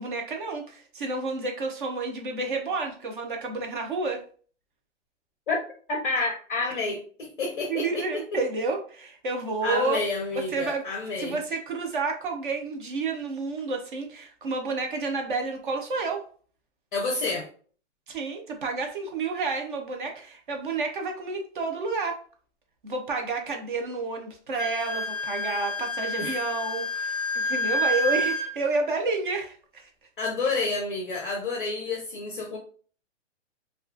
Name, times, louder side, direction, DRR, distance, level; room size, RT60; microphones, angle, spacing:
voice 1, 0.0-4.2 7.7-10.0 10.4-10.8 11.2-16.2 18.1-22.2 22.8-29.9, right 3 dB, 40° right, 3 dB, 0.5 m, -30 dB
voice 2, 5.9-8.0 9.6-11.4 16.9-17.5 26.2-26.4 30.2-32.6, left 3 dB, 45° left, 0 dB, 0.5 m, -29 dB
Wind instrument woodwind instrument, 24.5-28.5, left 1 dB, 60° right, 1.0 m, -28 dB
2.4 x 2.2 x 2.4 m, 0.43 s
hypercardioid pair, 170°, 38 cm